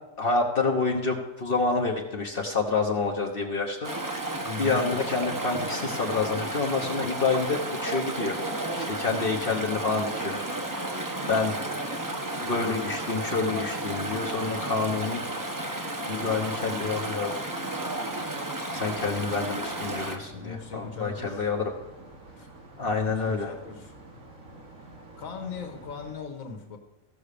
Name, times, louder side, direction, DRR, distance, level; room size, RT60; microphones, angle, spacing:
voice 1, 0.2-4.1 4.6-8.4 8.8-10.9 11.3-11.5 12.4-15.2 15.8-17.5 18.7-21.7 22.8-23.5, left 4 dB, 45° left, 1 dB, 1.2 m, -28 dB
Chatter / Stream, 3.8-20.2, right 1 dB, 15° right, 0.9 m, -32 dB
voice 2, 4.5-4.9 20.3-21.5 22.4-22.5 23.0-23.9 25.2-26.8, left 5 dB, 80° left, 5 dB, 1.7 m, -39 dB
sound 1, 18.7-26.1, right 2 dB, 70° right, 2.4 m, -49 dB
15.0 x 6.2 x 6.7 m, 1.0 s
omnidirectional pair, 1.4 m